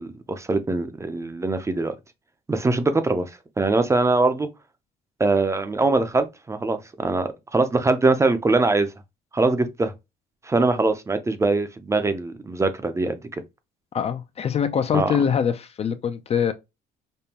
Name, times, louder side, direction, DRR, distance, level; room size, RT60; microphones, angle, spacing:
voice 1, 0.0-2.0 2.5-3.2 3.6-4.5 5.2-8.9 9.3-9.9 10.5-13.2 14.9-15.2, right 3 dB, 15° right, 0.5 m, -22 dB
voice 2, 13.9-16.5, left 7 dB, 35° left, 0.4 m, -23 dB
5.2 x 2.2 x 2.9 m
cardioid pair, 110°, 17 cm